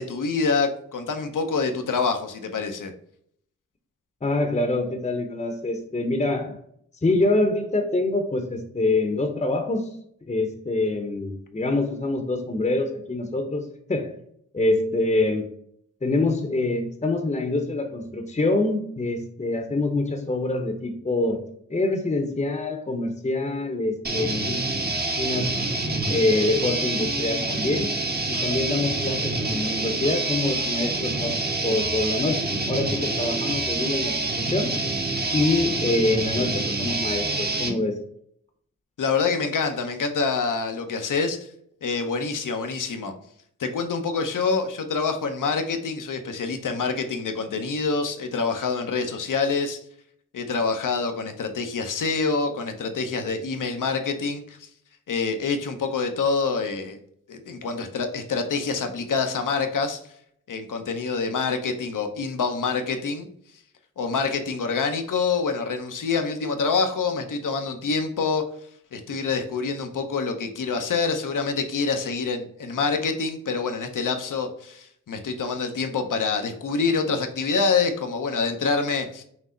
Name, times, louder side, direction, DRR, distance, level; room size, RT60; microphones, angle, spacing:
voice 1, 0.0-2.9 39.0-41.5 41.8-43.1 43.6-49.8 50.3-54.7 55.1-57.0 57.3-60.0 60.5-63.3 64.0-68.4 68.9-79.2, left 4 dB, 80° left, 6 dB, 0.8 m, -26 dB
voice 2, 4.2-6.6 7.0-9.9 10.3-14.2 14.5-15.5 16.0-21.4 21.7-24.6 25.1-25.6 26.1-27.9 28.3-31.4 31.6-34.8 35.3-38.0, left 2 dB, 25° left, 5 dB, 0.8 m, -25 dB
sound 1, 24.0-37.8, right 2 dB, 30° right, 0.9 m, -27 dB
6.1 x 2.0 x 3.8 m, 0.67 s
cardioid pair, 55°, 31 cm